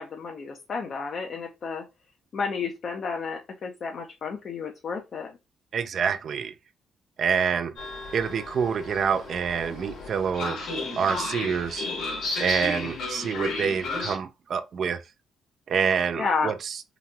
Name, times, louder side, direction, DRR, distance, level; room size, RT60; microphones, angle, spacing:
voice 1, 0.0-1.8 2.3-5.3 16.2-16.5, left 5 dB, 55° left, 0.6 m, -31 dB
voice 2, 5.7-6.5 7.2-7.7 8.1-10.6 11.0-11.9 12.4-15.0 15.7-16.8, right 6 dB, 55° right, 0.4 m, -27 dB
Train, 7.8-14.2, left 3 dB, 85° left, 1.2 m, -33 dB
2.9 x 2.7 x 2.2 m
cardioid pair, 90°, 0 cm